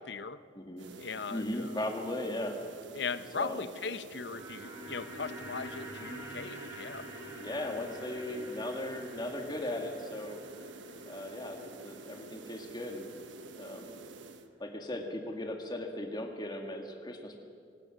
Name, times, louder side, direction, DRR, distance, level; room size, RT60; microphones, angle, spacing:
voice 1, 0.0-0.4 1.0-1.8 2.9-7.1, left 5 dB, 70° left, 13 dB, 0.8 m, -39 dB
voice 2, 0.5-0.9 1.3-2.6 3.3-3.6 7.4-10.4 11.0-13.1 13.6-13.9 14.6-17.4, left 1 dB, 25° left, 3 dB, 2.1 m, -37 dB
sound 1, 0.8-14.5, right 3 dB, 90° right, 1.2 m, -49 dB
sound 2, 4.0-14.1 14.4-14.5, right 1 dB, 15° right, 4.0 m, -48 dB
25.0 x 18.5 x 6.4 m, 2.4 s
head